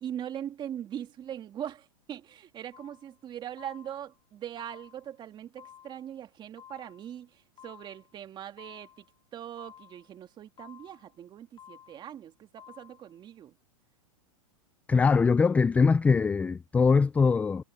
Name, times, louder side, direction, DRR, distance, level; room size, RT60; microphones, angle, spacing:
voice 1, 0.0-9.0 9.3-13.5, right 10 dB, 25° right, 2.3 m, -41 dB
sound 1, 2.7-3.1 3.6-4.1 4.6-5.1 5.6-6.1 6.6-7.1 7.6-8.1 8.6-9.1 9.6-10.1 10.6-11.1 11.6-12.1 12.6-13.1, left 9 dB, 25° left, 4.4 m, -53 dB
voice 2, 14.9-17.6, left 5 dB, 10° left, 0.3 m, -22 dB
hypercardioid pair, 135°, 18 cm